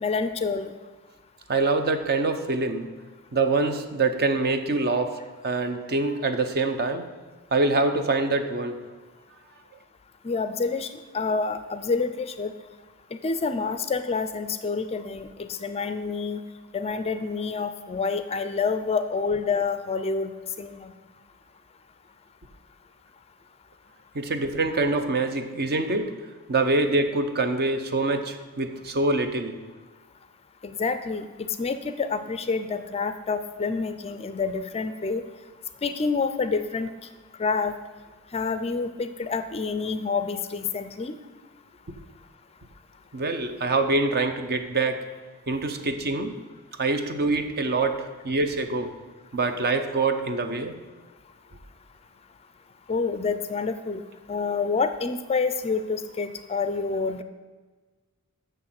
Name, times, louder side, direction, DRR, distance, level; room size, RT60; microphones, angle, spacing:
voice 1, 0.0-0.7 10.2-12.5 13.2-16.4 16.7-20.3 20.6-20.9 30.6-31.3 31.6-35.2 35.8-36.9 37.4-37.7 38.3-41.1 52.9-54.0 54.3-57.2, left 4 dB, 25° left, 10 dB, 0.4 m, -28 dB
voice 2, 1.5-2.9 3.3-7.1 7.5-8.8 24.1-26.1 26.5-29.6 43.1-45.0 45.5-46.3 46.8-48.9 49.3-50.8, right 3 dB, 45° right, 8 dB, 0.7 m, -25 dB
6.7 x 6.3 x 7.5 m, 1.4 s
head